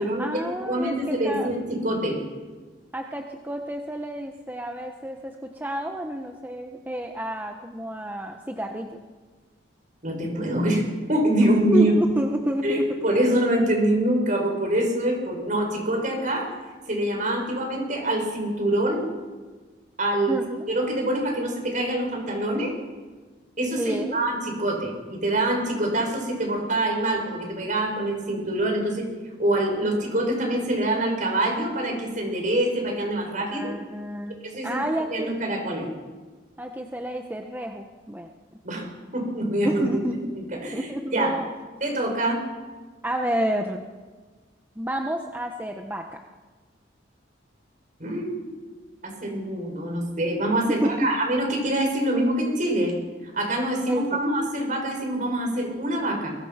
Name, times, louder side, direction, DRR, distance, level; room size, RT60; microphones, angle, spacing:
voice 1, 0.0-1.5 2.9-9.0 11.7-12.9 20.3-20.6 23.8-24.2 33.4-34.4 34.6-35.3 36.6-38.3 39.6-40.3 40.7-41.5 43.0-43.8 44.8-46.2 50.7-51.0 53.9-54.2, equal, 10° right, 2 dB, 1.3 m, -30 dB
voice 2, 0.7-2.2 10.0-10.8 11.1-11.9 12.6-16.5 16.9-19.0 20.0-20.4 20.7-22.7 23.6-29.1 29.4-33.7 34.4-34.8 35.1-35.9 38.6-39.8 40.6-41.3 41.8-42.4 48.0-48.5 49.0-53.0 53.2-56.4, right 1 dB, 45° right, 2 dB, 7.0 m, -25 dB
29.0 x 23.5 x 6.0 m, 1.4 s
head